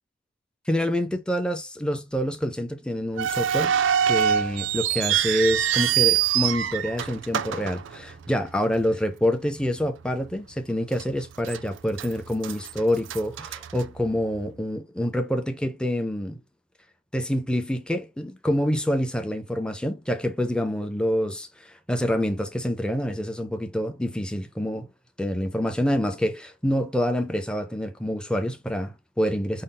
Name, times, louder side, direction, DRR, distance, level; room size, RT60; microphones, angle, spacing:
voice 1, 0.7-3.7 4.1-16.4 17.1-21.5 21.9-24.9 25.2-29.6, equal, 5° left, 0.5 m, -27 dB
sound 1, 3.2-8.5 8.8-8.9 9.6-9.8 10.3-10.4 11.0-11.6 11.9-14.4, right 9 dB, 75° right, 0.4 m, -25 dB
5.4 x 2.0 x 3.8 m
head